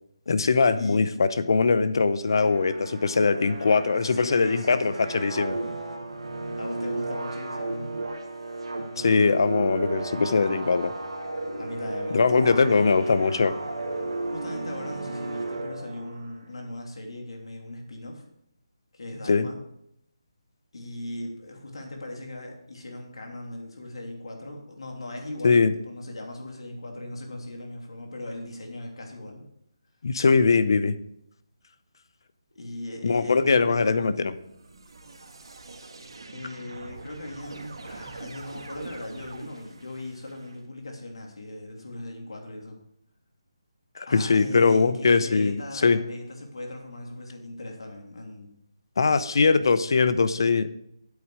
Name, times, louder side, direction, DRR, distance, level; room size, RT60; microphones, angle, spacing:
voice 1, 0.3-5.6 9.0-10.9 12.1-13.5 19.3-19.5 25.4-25.7 30.0-30.9 33.0-34.3 44.0-46.0 49.0-50.7, left 4 dB, 55° left, 13 dB, 0.7 m, -21 dB
sound 1, 2.2-16.3, right 2 dB, 85° right, 2.1 m, -34 dB
voice 2, 4.0-5.3 6.5-7.9 11.6-12.9 14.3-18.2 18.9-19.6 20.7-29.5 32.5-34.1 36.3-42.8 44.1-48.5, left 1 dB, 75° left, 1 dB, 2.9 m, -39 dB
sound 2, 33.9-40.6, right 3 dB, 65° right, 1.5 m, -44 dB
8.5 x 8.2 x 4.9 m, 0.77 s
hypercardioid pair, 170°, 3 cm